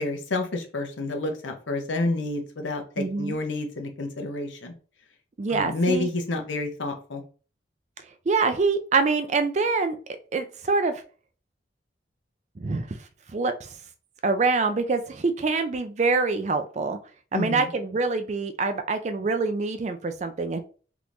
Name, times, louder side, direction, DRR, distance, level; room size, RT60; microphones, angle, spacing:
voice 1, 0.0-4.7 5.5-7.2 17.3-17.7, left 2 dB, 90° left, 4 dB, 0.8 m, -29 dB
voice 2, 3.0-3.4 5.4-6.1 8.3-10.0 10.3-11.0 12.6-12.9 13.3-13.5 14.2-17.0 17.3-20.6, right 4 dB, 40° right, 7 dB, 0.4 m, -25 dB
3.5 x 3.0 x 2.5 m, 0.38 s
head